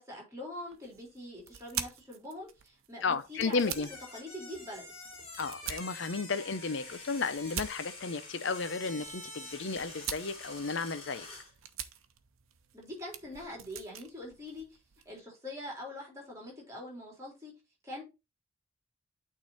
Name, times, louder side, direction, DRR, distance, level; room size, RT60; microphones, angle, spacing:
voice 1, 0.0-3.7 4.1-4.9 12.7-14.8 15.1-17.5 17.8-18.0, left 1 dB, 15° right, 3.6 m, -43 dB
sound 1, 0.7-15.2, right 9 dB, 85° right, 0.8 m, -45 dB
voice 2, 3.0-3.9 5.4-11.3, left 4 dB, 60° left, 0.7 m, -33 dB
sound 2, 3.5-11.5, left 2 dB, 30° left, 2.9 m, -47 dB
9.0 x 3.9 x 4.0 m
head